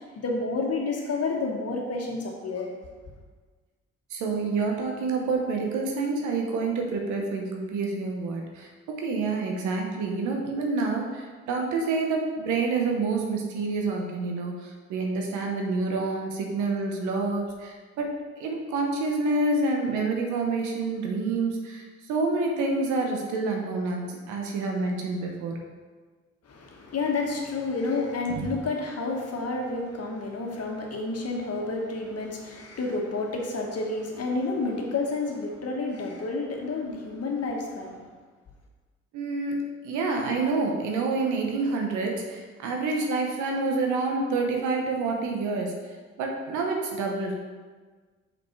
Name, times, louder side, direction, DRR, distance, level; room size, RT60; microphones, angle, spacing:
voice 1, 0.0-2.7 26.5-38.0, left 3 dB, 55° left, 1 dB, 1.5 m, -30 dB
voice 2, 4.1-8.7 9.0-18.1 18.4-25.5 28.3-28.5 39.1-39.6 39.8-45.7 46.2-47.3, right 3 dB, 85° right, 1 dB, 1.1 m, -28 dB
5.9 x 5.4 x 4.7 m, 1.4 s
supercardioid pair, 50°, 29 cm